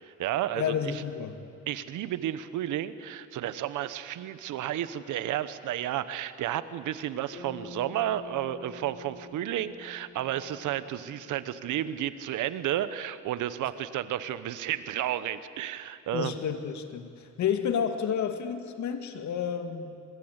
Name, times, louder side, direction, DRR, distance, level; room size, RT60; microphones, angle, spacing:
voice 1, 0.0-0.9 1.7-16.3, right 12 dB, 85° right, 14 dB, 1.1 m, -32 dB
voice 2, 0.6-1.4 16.1-20.0, left 8 dB, 70° left, 8 dB, 2.1 m, -30 dB
Bass guitar, 7.3-11.7, left 2 dB, 45° left, 5.2 m, -48 dB
25.5 x 21.0 x 8.2 m, 2.4 s
cardioid pair, 90°, 30 cm